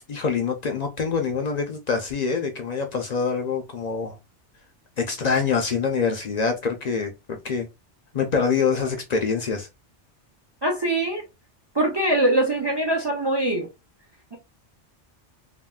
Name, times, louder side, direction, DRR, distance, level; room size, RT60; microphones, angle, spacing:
voice 1, 0.1-4.2 5.0-7.7 8.1-9.7, left 5 dB, 60° left, 0.4 m, -25 dB
voice 2, 10.6-11.2 11.7-13.7, right 1 dB, 40° right, 0.4 m, -22 dB
3.6 x 2.0 x 2.3 m
omnidirectional pair, 1.2 m